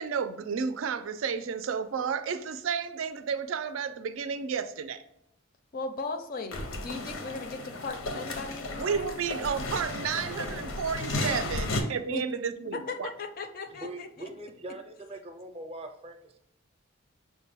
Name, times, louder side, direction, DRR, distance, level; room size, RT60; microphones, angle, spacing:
voice 1, 0.0-5.0 8.8-13.1, right 6 dB, 85° right, 0.4 m, -32 dB
voice 2, 5.7-9.1 12.1-12.2 12.7-14.3, left 3 dB, 45° left, 0.4 m, -37 dB
sound 1, 6.5-11.8, left 2 dB, 85° left, 0.7 m, -34 dB
voice 3, 13.7-16.4, right 1 dB, 30° right, 0.5 m, -42 dB
5.9 x 2.2 x 3.4 m
head